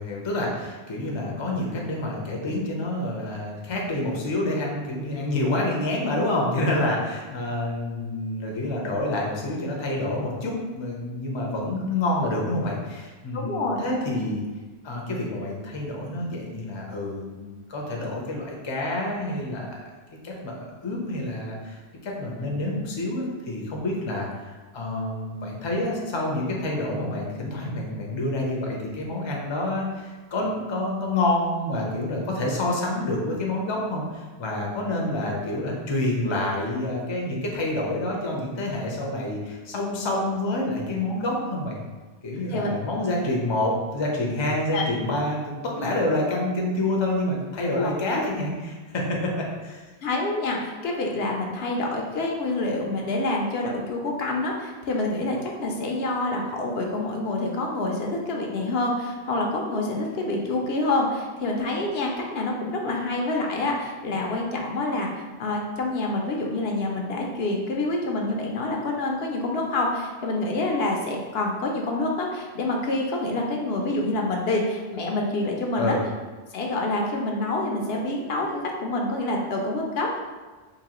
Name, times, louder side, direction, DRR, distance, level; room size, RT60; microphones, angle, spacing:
voice 1, 0.0-14.4 14.8-19.8 20.2-41.8 42.2-49.9 75.8-76.0, left 1 dB, 35° left, -1 dB, 0.5 m, -28 dB
voice 2, 13.3-13.8 42.5-42.7 44.7-44.8 47.8-47.9 50.0-76.0 76.5-80.2, left 2 dB, 75° left, 0 dB, 0.8 m, -27 dB
3.9 x 2.7 x 2.9 m, 1.3 s
omnidirectional pair, 1.1 m